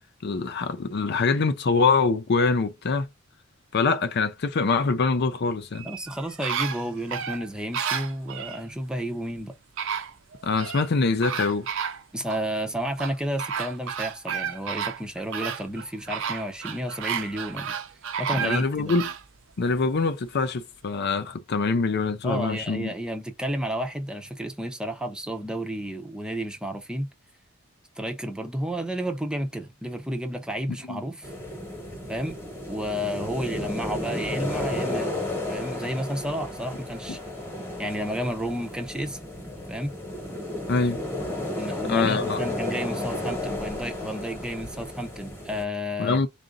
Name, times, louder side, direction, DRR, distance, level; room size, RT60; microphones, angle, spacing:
voice 1, 0.2-3.1 3.7-5.9 10.4-11.7 18.4-19.1 19.6-22.9 30.9-31.0 40.7-41.0 41.9-42.5 46.0-46.3, left 4 dB, 55° left, 0.5 m, -24 dB
sound 1, 5.7-8.6 9.4-9.5 9.8-10.9 11.2-12.4 13.0-19.2 19.7-19.8, right 7 dB, 65° right, 0.6 m, -32 dB
voice 2, 5.8-9.6 12.1-17.8 18.2-18.9 22.2-27.1 28.0-31.3 32.1-32.4 32.7-37.2 37.8-39.2 39.7-39.9 41.5-46.2, equal, 5° right, 0.6 m, -31 dB
sound 2, 31.2-45.6, left 1 dB, 10° left, 1.2 m, -33 dB
3.7 x 2.5 x 3.8 m
head